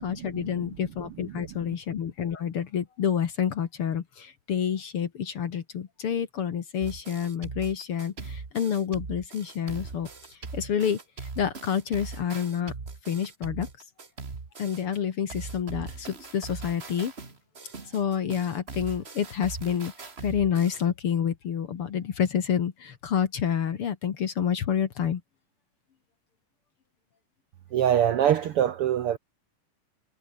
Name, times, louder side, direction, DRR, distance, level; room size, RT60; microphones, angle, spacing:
voice 1, 0.0-10.1 10.5-12.7 13.1-13.7 14.6-17.1 17.9-19.9 20.2-25.2, left 8 dB, 50° left, 2.0 m, -28 dB
sound 1, 6.8-15.0 15.3-20.8, right 4 dB, 25° right, 1.5 m, -40 dB
voice 2, 27.7-29.2, right 10 dB, 70° right, 1.3 m, -24 dB
omnidirectional pair, 3.8 m